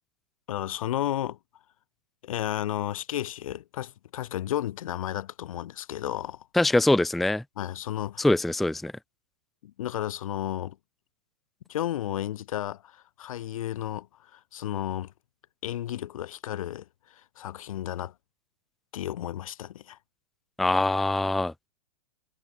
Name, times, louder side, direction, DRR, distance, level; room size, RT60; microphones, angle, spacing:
voice 1, 0.5-1.4 2.2-6.5 7.6-8.3 9.6-10.8 11.7-14.1 14.3-15.1 15.6-18.1 18.9-20.0, left 12 dB, 70° left, 0.9 m, -33 dB
voice 2, 6.5-7.4 8.2-8.9 20.6-21.5, left 2 dB, ahead, 0.4 m, -23 dB
hypercardioid pair, 140°, 18 cm